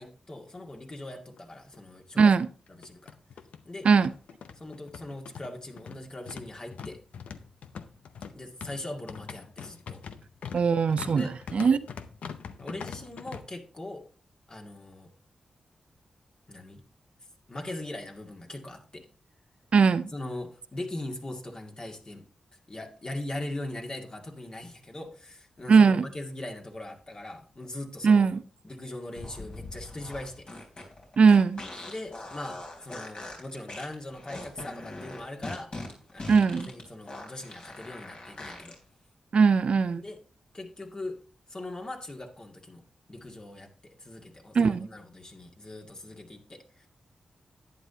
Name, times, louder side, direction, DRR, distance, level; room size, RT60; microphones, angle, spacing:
voice 1, 0.0-2.3 2.7-3.1 3.6-3.9 4.6-7.0 8.3-10.0 11.1-11.4 12.6-14.0 14.5-15.1 16.5-16.8 17.5-19.1 20.1-22.2 22.7-28.4 28.6-30.5 31.9-35.7 36.1-38.8 39.9-40.2 40.5-41.2 41.5-42.8 43.1-46.9, left 1 dB, 35° left, 2 dB, 2.1 m, -40 dB
sound 1, 1.4-1.5 1.7-1.8 2.7-13.4, left 6 dB, 80° left, 0.6 m, -42 dB
voice 2, 2.2-2.5 3.8-4.1 10.5-11.3 11.5-11.8 19.7-20.1 25.7-26.0 28.0-28.4 31.2-31.6 36.3-36.7 39.3-40.0 44.5-44.9, right 5 dB, 60° right, 14 dB, 0.5 m, -20 dB
sound 2, 29.1-38.7, left 2 dB, 55° left, 3.7 m, -42 dB
11.0 x 9.2 x 2.8 m, 0.39 s
cardioid pair, 50°, 2 cm